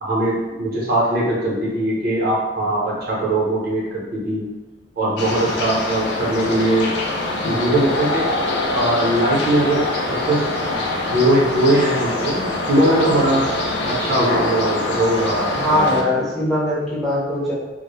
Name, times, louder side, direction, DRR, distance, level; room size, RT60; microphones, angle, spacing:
voice 1, 0.0-4.4 5.0-6.9 7.4-8.3 8.7-10.5 11.1-13.4 13.8-16.2, right 1 dB, 55° right, -5 dB, 0.7 m, -20 dB
sound 1, 5.2-16.0, left 2 dB, 65° left, 0.4 m, -24 dB
voice 2, 15.5-17.5, left 1 dB, ahead, -7 dB, 0.6 m, -21 dB
2.1 x 2.0 x 3.0 m, 1.2 s
head